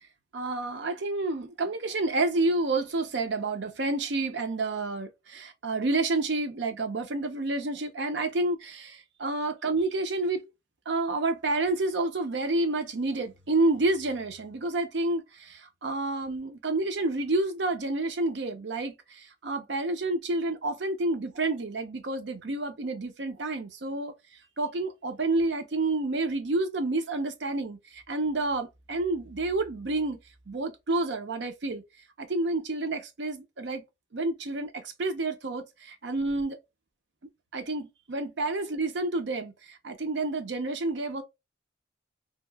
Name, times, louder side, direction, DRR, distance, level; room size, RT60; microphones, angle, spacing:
voice 1, 0.3-10.4 10.9-24.1 24.6-30.2 30.5-31.8 32.2-33.8 34.1-36.6 37.5-41.2, right 2 dB, 65° right, 0.6 m, -29 dB
2.9 x 2.7 x 2.2 m
head